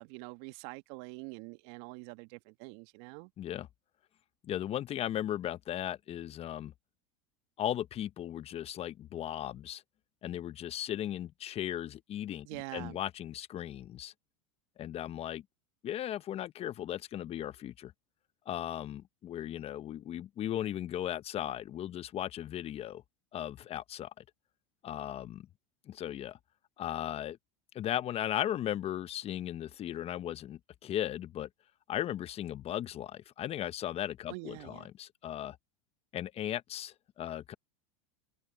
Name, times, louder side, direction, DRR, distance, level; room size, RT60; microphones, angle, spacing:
voice 1, 0.0-3.3 12.4-13.0 34.3-34.9, right 27 dB, 60° right, 1.9 m, -45 dB
voice 2, 3.4-3.7 4.4-6.7 7.6-9.8 10.2-14.1 14.8-15.4 15.8-17.9 18.5-23.0 23.3-24.2 24.8-25.5 25.9-26.4 26.8-27.4 27.7-31.5 31.9-35.6 36.1-37.5, left 11 dB, 35° left, 1.0 m, -37 dB
hypercardioid pair, 95°, 17 cm